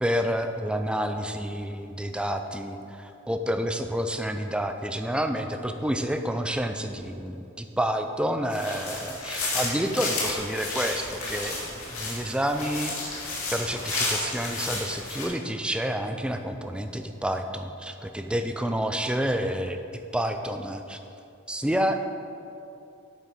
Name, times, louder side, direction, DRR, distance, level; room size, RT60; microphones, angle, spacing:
voice 1, 0.0-13.2 13.5-21.0 21.5-22.1, equal, 5° right, 6 dB, 0.4 m, -29 dB
sound 1, 8.5-15.3, left 2 dB, 70° left, 2.3 m, -32 dB
8.4 x 7.3 x 5.3 m, 2.7 s
head